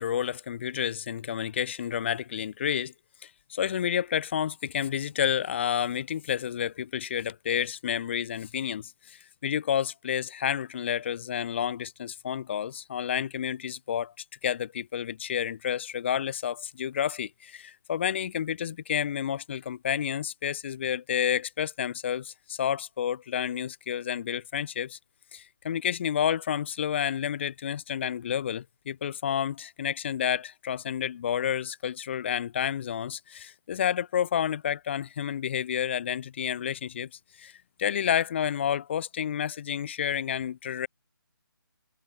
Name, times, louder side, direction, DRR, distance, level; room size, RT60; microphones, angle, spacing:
voice 1, 0.0-2.9 3.2-14.1 14.4-25.0 25.3-37.1 37.4-37.5 37.8-40.9, left 9 dB, 30° left, 3.5 m, -30 dB
figure-of-eight pair, 150°, 12 cm